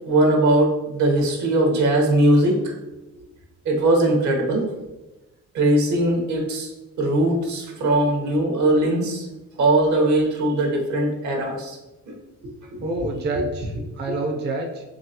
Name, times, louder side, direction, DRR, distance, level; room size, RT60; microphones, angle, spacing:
voice 1, 0.1-2.7 3.6-4.6 5.5-6.7 7.0-9.2 9.6-11.8 12.1-12.2, right 1 dB, 70° right, 1 dB, 1.1 m, -20 dB
voice 2, 12.8-14.8, right 2 dB, 35° right, 2 dB, 0.5 m, -27 dB
3.9 x 3.2 x 2.8 m, 1.1 s
cardioid pair, 90°, 30 cm